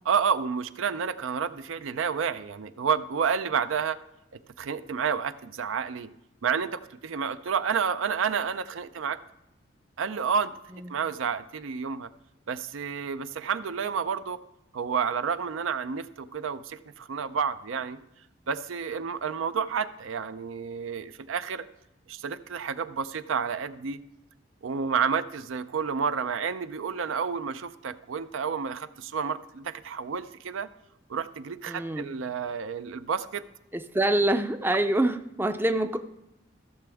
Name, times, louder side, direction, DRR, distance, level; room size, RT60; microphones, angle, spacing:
voice 1, 0.1-4.0 4.6-6.1 6.4-9.2 10.0-10.6 10.9-12.1 12.5-14.4 14.7-18.0 18.5-21.6 22.1-24.0 24.6-30.7 31.1-33.4, right 6 dB, 85° right, 12 dB, 0.5 m, -30 dB
voice 2, 31.7-32.1 33.7-36.0, right 1 dB, 10° right, 8 dB, 0.4 m, -25 dB
15.0 x 6.9 x 3.4 m, 0.91 s
head